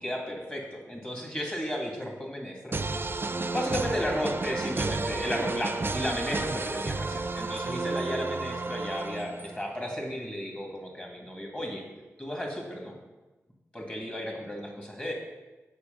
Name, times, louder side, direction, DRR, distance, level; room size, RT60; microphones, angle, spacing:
voice 1, 0.0-2.8 3.5-11.8 12.2-13.0 13.7-15.1, equal, 20° left, 0 dB, 2.4 m, -34 dB
sound 1, 2.7-9.7, right 3 dB, 40° right, 0.5 m, -32 dB
6.8 x 4.9 x 5.4 m, 1.2 s
cardioid pair, 40°, 6 cm